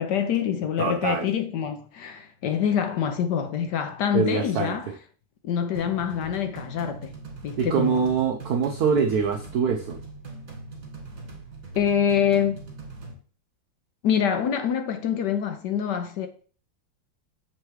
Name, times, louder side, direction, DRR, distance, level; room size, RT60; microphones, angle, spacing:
voice 1, 0.0-4.9 5.4-7.1 7.4-8.1 11.7-12.6 14.0-16.3, left 8 dB, 70° left, 1.0 m, -25 dB
voice 2, 0.8-1.3 4.1-4.8 7.6-10.0, right 6 dB, 85° right, 0.8 m, -24 dB
sound 1, 5.7-13.1, right 3 dB, 40° right, 1.9 m, -41 dB
7.5 x 3.1 x 4.6 m
omnidirectional pair, 2.4 m